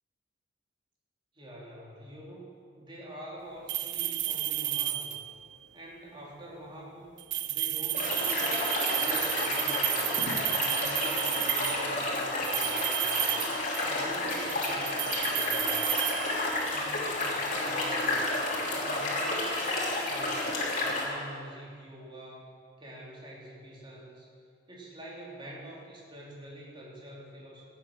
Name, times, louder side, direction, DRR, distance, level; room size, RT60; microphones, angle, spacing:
voice 1, 1.3-2.5 2.8-5.2 5.7-10.1 10.6-13.4 13.8-15.8 16.6-18.2 18.6-20.5 20.8-22.4 22.8-24.3 24.7-27.6, right 1 dB, 25° right, -4 dB, 3.3 m, -46 dB
sound 1, 3.7-5.4 7.2-11.9 12.4-14.0 14.3-16.8, right 13 dB, 70° right, 0.7 m, -32 dB
sound 2, 7.9-21.0, left 2 dB, 45° left, 3.1 m, -31 dB
16.0 x 9.2 x 6.5 m, 2.1 s
head